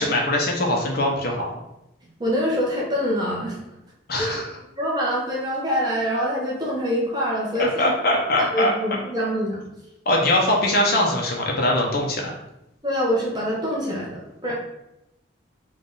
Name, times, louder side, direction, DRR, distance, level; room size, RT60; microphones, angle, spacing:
voice 1, 0.0-1.5 4.1-4.5 7.5-8.7 10.1-12.3, left 1 dB, 55° left, 0 dB, 0.7 m, -22 dB
voice 2, 2.2-3.6 4.1-4.4 4.8-7.9 8.4-9.6 12.8-14.5, equal, 20° right, -5 dB, 1.1 m, -25 dB
3.9 x 2.5 x 3.8 m, 0.86 s
head